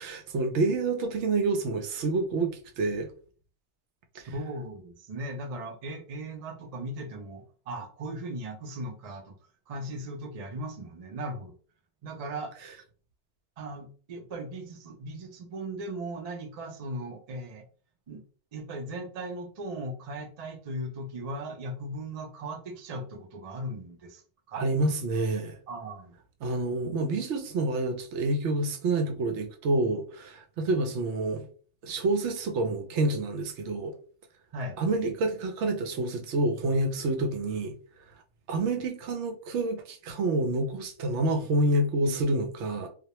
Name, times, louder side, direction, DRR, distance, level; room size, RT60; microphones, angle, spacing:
voice 1, 0.0-3.1 4.1-4.2 24.5-25.6 26.4-31.5 31.8-33.9 34.8-37.7 38.5-42.9, right 2 dB, 75° right, 0.8 m, -28 dB
voice 2, 4.1-9.4 9.7-11.5 12.0-12.5 13.6-17.7 18.1-18.2 18.5-24.2 24.5-24.7 25.7-26.2 34.5-34.8, right 1 dB, 55° right, 0.4 m, -38 dB
2.3 x 2.1 x 2.8 m
omnidirectional pair, 1.2 m